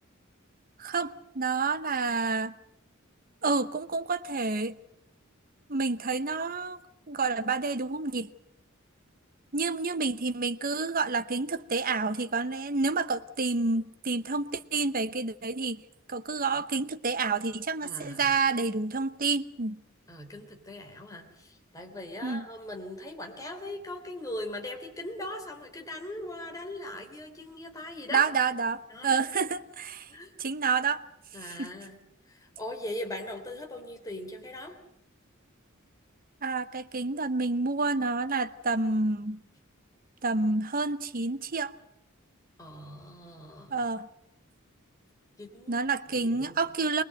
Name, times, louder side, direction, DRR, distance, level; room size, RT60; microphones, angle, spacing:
voice 1, 0.8-2.5 3.4-4.8 5.7-6.8 7.1-8.3 9.5-15.8 16.1-19.8 22.2-22.4 28.1-30.1 30.4-31.0 31.6-31.7 36.4-39.4 40.2-41.7 43.7-44.1 45.7-47.0, right 4 dB, 45° right, 0.9 m, -29 dB
voice 2, 17.8-18.4 20.1-28.3 28.9-29.5 30.1-30.3 31.3-32.0 32.3-34.8 42.6-43.8 45.4-45.8 46.1-46.6, left 1 dB, 15° left, 3.5 m, -40 dB
22.5 x 21.0 x 7.8 m
head